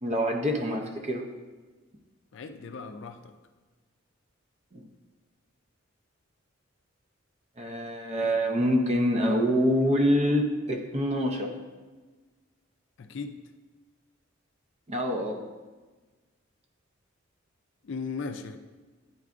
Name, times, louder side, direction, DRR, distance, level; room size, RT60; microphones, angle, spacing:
voice 1, 0.0-1.3 4.7-4.8 7.6-11.5 14.9-15.4, equal, 35° right, 3 dB, 0.6 m, -26 dB
voice 2, 2.3-3.3 13.0-13.4 17.8-18.6, left 4 dB, 60° left, 7 dB, 0.4 m, -37 dB
9.2 x 4.7 x 2.5 m, 1.3 s
head